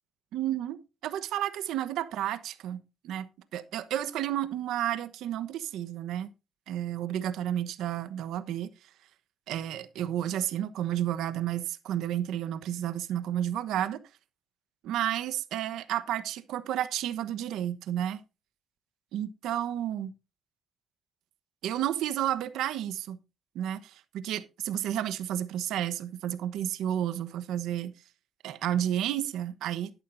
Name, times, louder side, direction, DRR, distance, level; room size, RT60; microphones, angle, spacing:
voice 1, 0.3-2.8 3.0-6.3 6.7-8.7 9.5-14.0 14.8-18.2 19.1-20.1 21.6-23.2 23.5-27.9 28.4-29.9, right 11 dB, 85° right, 1.1 m, -31 dB
12.5 x 11.0 x 2.7 m
cardioid pair, 90°, 0 cm